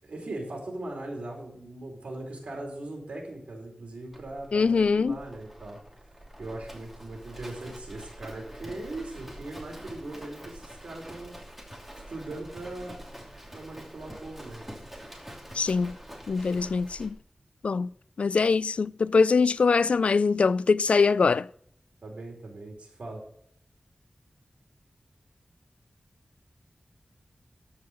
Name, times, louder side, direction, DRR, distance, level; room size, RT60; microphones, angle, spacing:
voice 1, 0.0-5.8 6.4-11.4 12.1-13.0 13.5-14.6 22.0-23.2, right 2 dB, 85° right, 4.6 m, -39 dB
Livestock farm animals working animals, 4.1-17.1, equal, 10° right, 2.8 m, -46 dB
voice 2, 4.5-5.2 15.5-16.0 16.3-17.1 17.6-17.9 18.2-21.5, left 4 dB, 75° left, 0.3 m, -23 dB
13.5 x 5.6 x 5.2 m
wide cardioid pair, 90°, 2 cm